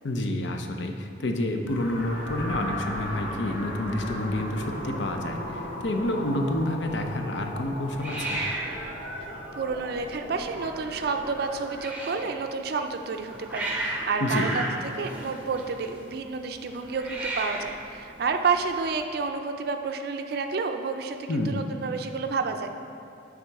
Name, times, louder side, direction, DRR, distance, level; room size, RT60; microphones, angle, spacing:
voice 1, 0.0-8.4 14.2-14.5 21.3-21.6, left 1 dB, 70° left, 5 dB, 0.6 m, -29 dB
Hiss, 1.7-19.0, right 1 dB, 10° right, 0.7 m, -37 dB
sound 1, 1.8-11.4, equal, 90° left, 0.9 m, -37 dB
voice 2, 9.5-14.6 15.0-22.7, right 4 dB, 55° right, 6 dB, 0.4 m, -30 dB
9.0 x 3.6 x 4.6 m, 2.5 s
head